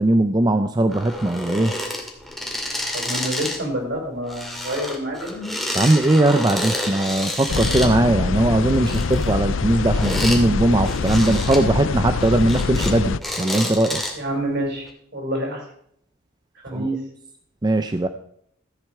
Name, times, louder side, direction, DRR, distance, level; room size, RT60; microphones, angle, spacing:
voice 1, 0.0-1.7 5.7-14.0 16.7-16.9 17.6-18.1, right 1 dB, 20° right, 8 dB, 0.5 m, -19 dB
sound 1, 0.9-3.7 3.9-7.9 8.6-10.4 10.8-11.6 12.1-12.9 13.2-14.3 14.9-15.0, left 1 dB, ahead, 2.2 m, -29 dB
voice 2, 2.9-5.4 14.1-15.6 16.6-17.0, right 1 dB, 60° right, 1 dB, 5.1 m, -27 dB
sound 2, 7.5-13.2, left 4 dB, 70° left, 0.5 m, -24 dB
14.0 x 8.8 x 4.8 m, 0.68 s
head